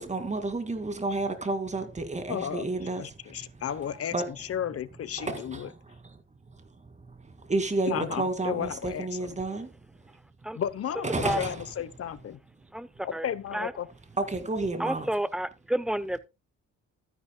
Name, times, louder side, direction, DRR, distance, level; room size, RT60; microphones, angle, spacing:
voice 1, 0.0-3.0 3.8-4.3 5.2-5.6 7.2-9.7 11.0-11.6 14.2-15.1, right 2 dB, 25° right, 2.2 m, -30 dB
voice 2, 2.3-5.7 7.9-9.4 10.5-11.1 11.4-12.4 13.0-13.9, left 9 dB, 50° left, 0.8 m, -34 dB
voice 3, 12.7-13.2 13.5-13.7 14.8-16.2, right 1 dB, ahead, 0.7 m, -30 dB
12.5 x 10.5 x 2.2 m
cardioid pair, 90°, 30 cm